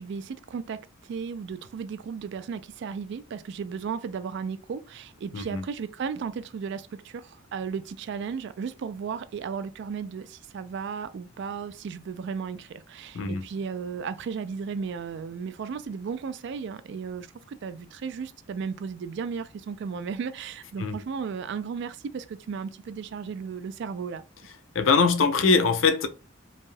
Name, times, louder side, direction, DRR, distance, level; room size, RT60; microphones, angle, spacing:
voice 1, 0.0-24.2, right 6 dB, 60° right, 0.3 m, -35 dB
voice 2, 24.7-26.1, left 4 dB, 80° left, 0.5 m, -22 dB
3.3 x 2.6 x 2.2 m
head